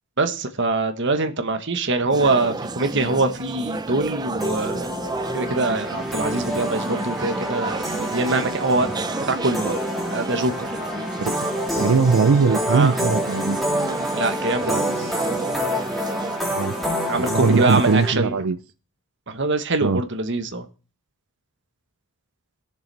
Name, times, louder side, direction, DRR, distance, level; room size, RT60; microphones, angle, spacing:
voice 1, 0.2-4.8 5.3-8.9 9.3-9.7 10.1-10.8 12.7-13.0 14.1-15.1 17.1-18.4 19.3-20.7, right 3 dB, 55° right, 7 dB, 1.3 m, -23 dB
sound 1, 2.1-16.4, right 2 dB, 20° right, 0.6 m, -32 dB
sound 2, 4.4-18.1, equal, ahead, 3.0 m, -28 dB
voice 2, 11.2-11.5 11.8-13.6 16.5-16.8 17.2-18.6 19.8-20.0, right 5 dB, 80° right, 13 dB, 0.5 m, -20 dB
17.5 x 6.8 x 3.4 m, 0.36 s
head